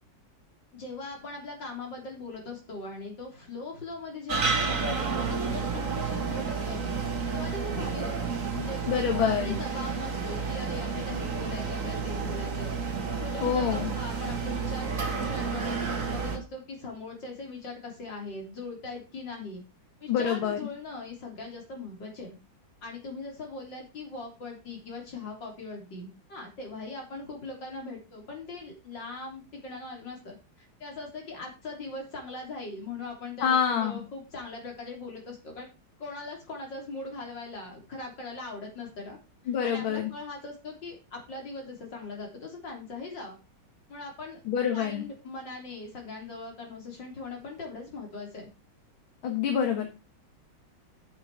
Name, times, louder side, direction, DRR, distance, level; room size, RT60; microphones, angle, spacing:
voice 1, 0.7-6.9 7.3-8.8 9.1-12.7 13.2-19.6 20.0-22.4 22.8-35.7 36.0-39.2 39.6-43.4 43.9-44.4 44.7-48.5, left 3 dB, 60° left, 1 dB, 4.0 m, -40 dB
sound 1, 4.3-16.4, right 5 dB, 40° right, 2.0 m, -31 dB
voice 2, 8.9-9.6 13.4-13.9 20.1-20.6 33.4-34.0 39.5-40.1 44.5-45.0 49.2-49.9, left 8 dB, 80° left, 4 dB, 2.1 m, -26 dB
9.1 x 8.0 x 4.7 m, 0.29 s
omnidirectional pair, 2.2 m